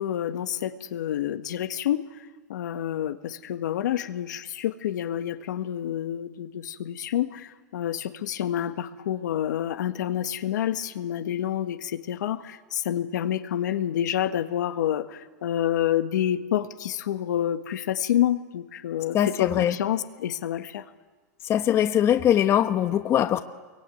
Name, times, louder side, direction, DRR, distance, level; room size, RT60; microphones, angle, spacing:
voice 1, 0.0-20.8, left 11 dB, 75° left, 1.7 m, -28 dB
voice 2, 19.1-19.8 21.4-23.4, left 10 dB, 25° left, 1.1 m, -22 dB
25.5 x 23.0 x 9.3 m
hypercardioid pair, 135°, 10 cm